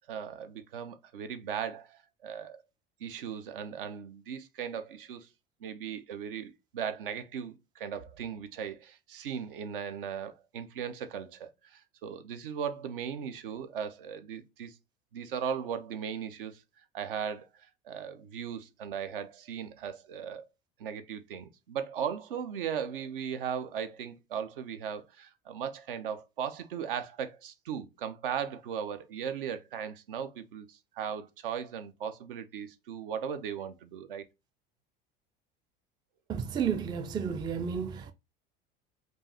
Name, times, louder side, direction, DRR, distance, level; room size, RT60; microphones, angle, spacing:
voice 1, 0.1-2.6 3.0-5.3 5.6-14.7 15.1-16.6 16.9-17.5 17.8-20.5 20.8-34.2, right 8 dB, 65° right, 0.6 m, -37 dB
voice 2, 36.3-38.1, right 7 dB, 15° right, 0.3 m, -32 dB
4.5 x 2.5 x 2.8 m
figure-of-eight pair, 70°, 29 cm